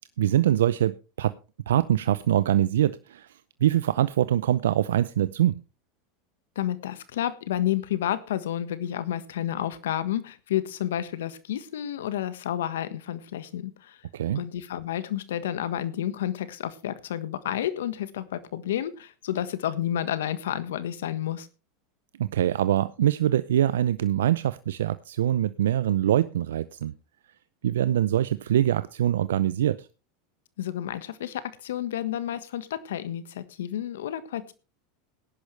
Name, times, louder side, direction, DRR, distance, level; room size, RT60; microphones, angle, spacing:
voice 1, 0.2-1.3 1.7-5.6 14.1-14.4 22.2-26.9 27.6-29.9, right 11 dB, 80° right, 14 dB, 0.5 m, -24 dB
voice 2, 6.5-14.0 14.3-21.5 30.6-34.5, left 11 dB, 80° left, 14 dB, 1.4 m, -30 dB
18.0 x 10.5 x 3.3 m, 0.32 s
hypercardioid pair, 100°, 0 cm